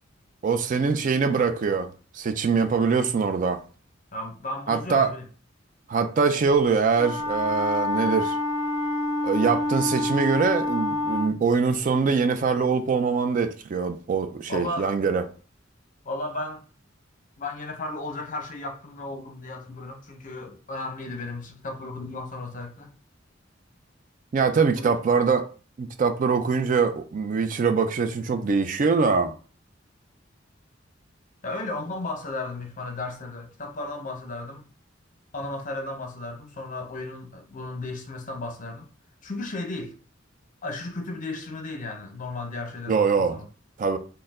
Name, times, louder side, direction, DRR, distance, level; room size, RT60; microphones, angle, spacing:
voice 1, 0.4-1.9 2.1-3.6 4.7-5.1 5.9-8.4 9.2-15.3 24.3-25.5 25.8-29.3 42.9-43.4 43.8-44.0, right 5 dB, 45° right, 0.4 m, -23 dB
voice 2, 4.1-5.2 14.5-15.0 16.0-16.6 17.4-22.9 24.8-25.2 31.4-34.6 35.3-38.9 39.2-40.0 40.6-43.4, left 2 dB, 45° left, 0.7 m, -34 dB
Wind instrument woodwind instrument, 6.9-11.4, left 2 dB, 20° right, 2.1 m, -27 dB
4.4 x 2.1 x 3.5 m
head